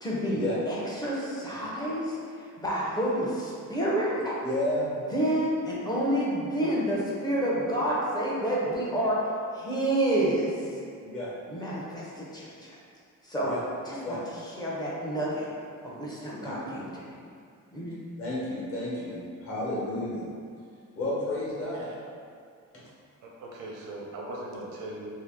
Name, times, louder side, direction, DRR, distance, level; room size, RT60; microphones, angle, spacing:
voice 1, 0.0-4.3 5.1-9.2 9.5-10.8 11.5-12.8 13.2-13.5 13.8-15.5 15.8-17.0 17.7-18.0, right 1 dB, 15° left, -6 dB, 0.5 m, -29 dB
voice 2, 4.4-4.9 11.0-11.3 13.4-13.6 14.0-14.2 16.4-16.9 18.2-20.2 21.0-21.9, left 1 dB, 45° left, -7 dB, 1.1 m, -31 dB
voice 3, 23.2-25.1, right 1 dB, 85° right, -2 dB, 0.7 m, -39 dB
2.7 x 2.6 x 3.5 m, 2.2 s
cardioid pair, 160°, 31 cm